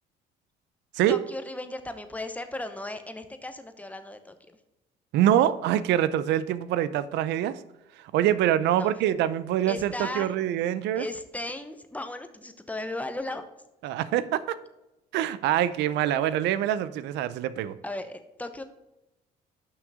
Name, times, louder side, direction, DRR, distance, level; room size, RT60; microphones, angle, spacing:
voice 1, 1.1-4.6 8.6-8.9 9.7-10.3 11.0-13.4 17.8-18.6, left 2 dB, 10° left, 9 dB, 0.9 m, -36 dB
voice 2, 5.1-7.6 8.1-11.1 13.8-14.4 15.1-17.7, right 11 dB, 85° right, 15 dB, 0.6 m, -25 dB
6.4 x 5.9 x 5.0 m, 0.96 s
cardioid pair, 85°, 18 cm